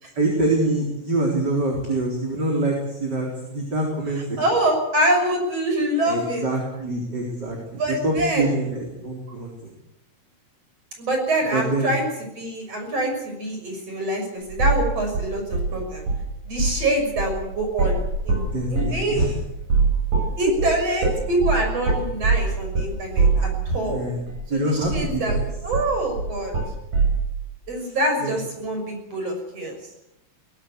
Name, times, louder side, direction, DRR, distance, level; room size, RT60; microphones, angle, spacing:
voice 1, 0.1-4.4 6.1-9.5 11.5-11.9 18.4-19.3 23.9-24.2 24.5-25.4 27.8-28.0 28.2-28.4, right 2 dB, 30° right, 0 dB, 4.3 m, -25 dB
voice 2, 4.4-6.4 7.8-8.4 11.0-12.1 12.4-16.0 16.5-19.2 20.4-24.0 24.5-25.4 25.6-26.5 27.7-29.8, right 1 dB, 50° right, 3 dB, 7.2 m, -25 dB
sound 1, 14.5-14.9 15.1-16.3 16.5-16.8 17.2-23.9 24.3-24.4 24.8-27.2, right 4 dB, 80° right, 9.4 m, -23 dB
22.0 x 17.5 x 8.3 m, 0.86 s
omnidirectional pair, 3.8 m